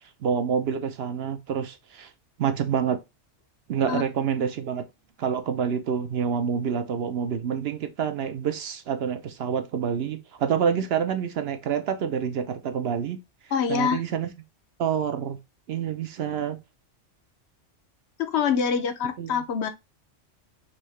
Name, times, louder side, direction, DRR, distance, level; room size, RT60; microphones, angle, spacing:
voice 1, 0.2-2.1 2.4-3.0 3.7-4.8 5.2-13.2 13.7-14.3 14.8-15.4 15.7-16.6 19.2-19.4, right 7 dB, 65° right, 0.8 m, -27 dB
voice 2, 13.5-14.0 18.2-19.7, left 7 dB, 70° left, 0.9 m, -25 dB
5.6 x 2.7 x 3.1 m
omnidirectional pair, 1.2 m